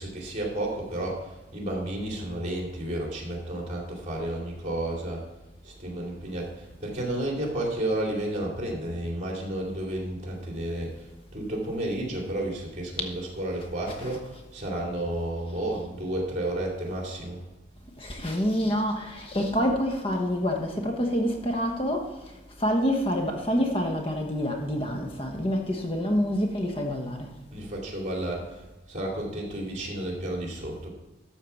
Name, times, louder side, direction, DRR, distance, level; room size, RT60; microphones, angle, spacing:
voice 1, 0.0-5.2 5.6-11.0 11.3-17.4 27.5-28.6 28.9-30.9, right 1 dB, 40° right, -1 dB, 2.8 m, -32 dB
voice 2, 18.0-22.1 22.6-27.3, equal, 30° left, 2 dB, 1.0 m, -27 dB
12.5 x 4.6 x 7.0 m, 1.1 s
head